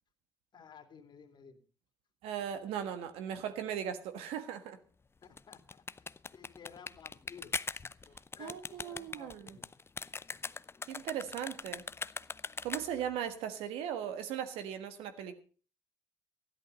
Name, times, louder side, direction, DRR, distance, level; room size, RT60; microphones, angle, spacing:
voice 1, 0.5-1.7 5.2-7.6 8.1-9.7, left 7 dB, 50° left, 2.6 m, -55 dB
voice 2, 2.2-4.8 8.4-9.6 10.9-11.8 12.6-15.4, right 9 dB, 75° right, 1.5 m, -38 dB
sound 1, 5.2-13.1, left 4 dB, 25° left, 0.6 m, -41 dB
13.0 x 11.5 x 5.3 m
hypercardioid pair, 55°, 10 cm